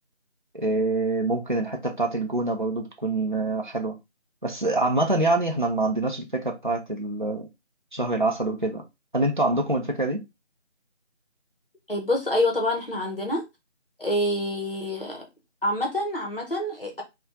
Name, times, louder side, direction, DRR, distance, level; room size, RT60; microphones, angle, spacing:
voice 1, 0.5-3.9 4.4-7.5 7.9-8.8 9.1-10.2, right 2 dB, 45° right, 0.5 m, -25 dB
voice 2, 11.9-13.4 14.0-15.3 15.6-17.0, left 1 dB, 50° left, 0.8 m, -26 dB
2.5 x 2.2 x 3.7 m
figure-of-eight pair, 170°, 36 cm